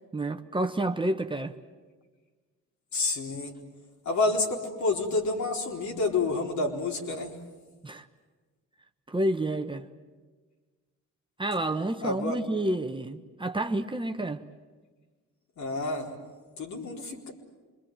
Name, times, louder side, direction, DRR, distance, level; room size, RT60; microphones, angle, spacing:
voice 1, 0.1-1.5 7.8-8.1 9.1-9.8 11.4-14.4, right 1 dB, 15° right, 1.2 m, -29 dB
voice 2, 2.9-3.5 4.1-7.3 12.0-12.4 15.6-16.1 16.6-17.3, left 3 dB, 65° left, 4.2 m, -29 dB
27.0 x 22.0 x 9.1 m
cardioid pair, 90°, 30 cm